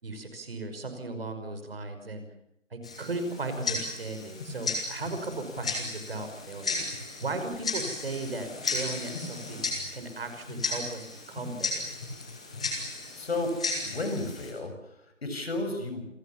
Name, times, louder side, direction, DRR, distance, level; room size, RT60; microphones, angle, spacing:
voice 1, 0.0-2.2 2.7-6.8 7.2-9.6 9.9-11.9, right 2 dB, 50° right, 7 dB, 5.7 m, -36 dB
Tick-tock, 2.8-14.5, left 3 dB, 5° left, 0.9 m, -35 dB
voice 2, 13.2-13.5 13.9-15.0 15.2-16.1, left 2 dB, 55° left, 7 dB, 7.1 m, -32 dB
28.0 x 21.0 x 7.4 m, 0.80 s
figure-of-eight pair, 165°, 38 cm